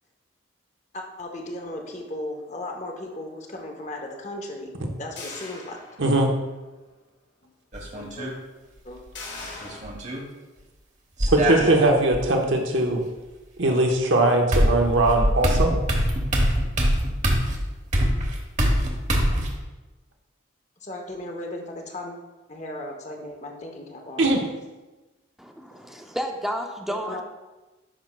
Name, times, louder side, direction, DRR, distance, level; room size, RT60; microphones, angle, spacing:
voice 1, 0.9-4.7 5.0-5.8 7.4-7.5 7.9-8.3 8.8-9.0 11.3-11.4 11.7-11.8 20.8-22.2 22.5-24.3 25.9-26.0 27.1-27.2, left 1 dB, 35° left, 2 dB, 0.8 m, -36 dB
sound 1, 5.2-6.4 6.9-7.0 9.1-9.8, left 3 dB, 65° left, 1.6 m, -40 dB
voice 2, 6.0-6.3 11.3-13.0 13.6-15.7 24.2-24.4, right 2 dB, 75° right, 2 dB, 1.1 m, -20 dB
sound 2, 7.7-8.3 9.6-10.2 11.2-12.2 13.9-14.0 14.5-19.5, equal, 35° right, 1.0 m, -23 dB
voice 3, 25.4-27.2, equal, ahead, 3 dB, 0.5 m, -31 dB
10.0 x 6.1 x 2.2 m, 1.2 s
head